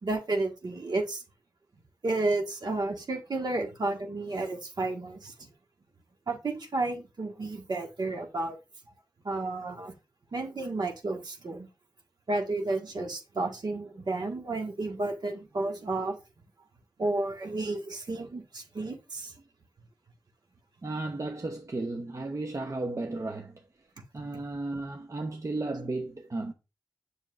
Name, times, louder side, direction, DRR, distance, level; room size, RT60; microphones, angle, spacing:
voice 1, 0.0-1.2 2.0-5.3 6.3-8.6 9.2-9.9 10.3-11.7 12.3-16.2 17.0-19.3, right 2 dB, 65° right, 1.5 m, -32 dB
voice 2, 20.8-23.7 24.1-26.5, right 2 dB, 45° right, 0.8 m, -34 dB
7.4 x 6.3 x 2.4 m
cardioid pair, 55°, 8 cm